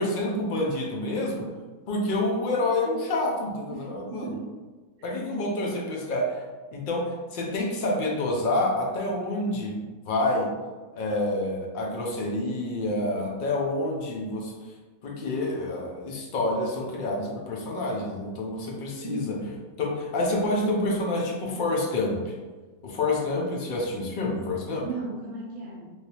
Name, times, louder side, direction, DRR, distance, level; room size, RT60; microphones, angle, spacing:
voice 1, 0.0-1.5 1.9-4.4 5.0-6.4 6.7-7.1 7.3-9.8 10.0-10.5 10.9-14.5 15.0-19.4 19.8-22.3 22.8-24.9, left 2 dB, 55° left, -1 dB, 0.6 m, -28 dB
voice 2, 3.7-4.5 5.0-5.5 19.0-19.5 24.8-25.9, right 3 dB, 70° right, -3 dB, 0.9 m, -37 dB
3.2 x 2.7 x 2.8 m, 1.3 s
omnidirectional pair, 1.5 m